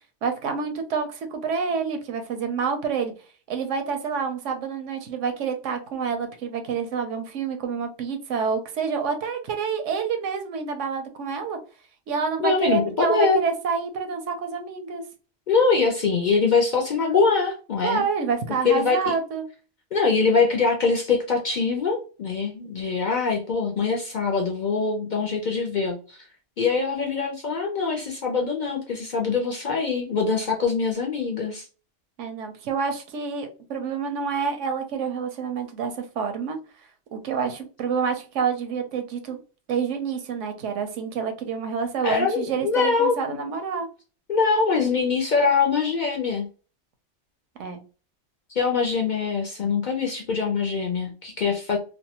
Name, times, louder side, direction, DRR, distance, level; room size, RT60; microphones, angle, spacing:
voice 1, 0.2-3.1 3.5-11.6 12.1-15.0 17.8-19.4 32.2-36.6 37.1-39.4 39.7-43.9 47.6-47.8, right 5 dB, 85° right, 7 dB, 1.0 m, -28 dB
voice 2, 12.4-13.4 15.5-18.0 18.6-19.0 19.9-26.3 26.6-31.6 42.0-43.4 44.3-46.5 48.5-51.8, left 4 dB, 55° left, 0 dB, 0.5 m, -23 dB
2.6 x 2.1 x 2.8 m, 0.36 s
omnidirectional pair, 1.2 m